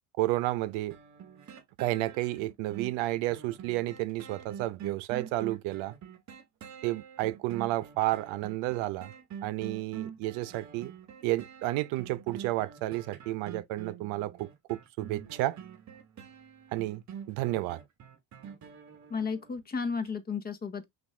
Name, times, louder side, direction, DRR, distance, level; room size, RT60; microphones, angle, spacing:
voice 1, 0.2-1.0 1.8-6.0 6.8-9.1 9.4-10.9 11.2-15.6 16.7-17.8, right 17 dB, 80° right, 0.7 m, -31 dB
sound 1, 0.9-19.6 20.1-20.2, right 8 dB, 40° right, 1.0 m, -46 dB
voice 2, 19.1-20.8, left 5 dB, 20° left, 0.8 m, -33 dB
6.1 x 2.6 x 3.2 m
cardioid pair, 140°, 46 cm